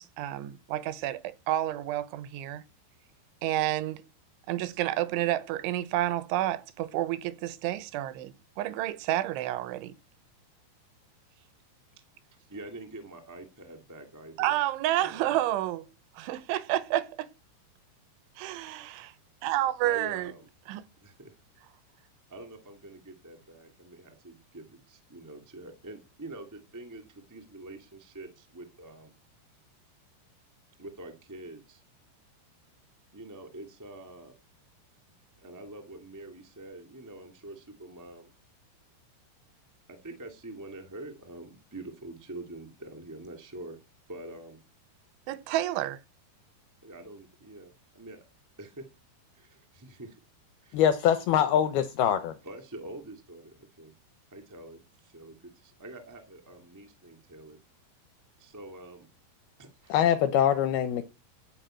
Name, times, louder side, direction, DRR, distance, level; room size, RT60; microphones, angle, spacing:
voice 1, 0.0-2.6 3.4-4.0 4.5-9.9 14.4-15.9 16.2-17.3 18.4-19.1 19.4-20.3 20.7-20.8 45.3-46.0, right 14 dB, 85° right, 3.3 m, -30 dB
voice 2, 12.5-14.6 15.0-15.4 19.8-20.5 21.0-21.3 22.3-29.1 30.8-31.8 33.1-34.4 35.4-38.3 39.9-43.8 44.1-44.6 46.8-48.2 48.6-48.8 49.3-50.2 50.6-50.8 52.4-53.9 54.3-57.6 58.4-59.1 59.6-60.0, right 2 dB, 20° right, 0.5 m, -45 dB
voice 3, 50.7-52.4 59.9-61.1, left 9 dB, 80° left, 2.3 m, -24 dB
14.5 x 5.1 x 8.9 m
omnidirectional pair, 5.3 m